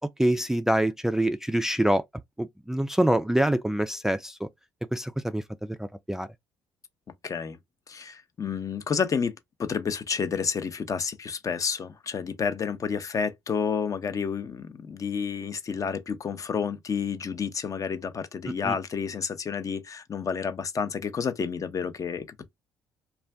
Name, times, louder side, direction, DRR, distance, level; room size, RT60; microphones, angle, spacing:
voice 1, 0.2-2.0 2.4-4.5 4.9-6.3 18.5-18.7, right 1 dB, 5° right, 0.3 m, -25 dB
voice 2, 7.2-7.6 7.9-9.3 9.6-22.5, left 6 dB, 40° left, 0.6 m, -30 dB
2.4 x 2.2 x 3.3 m
supercardioid pair, 65°, 9 cm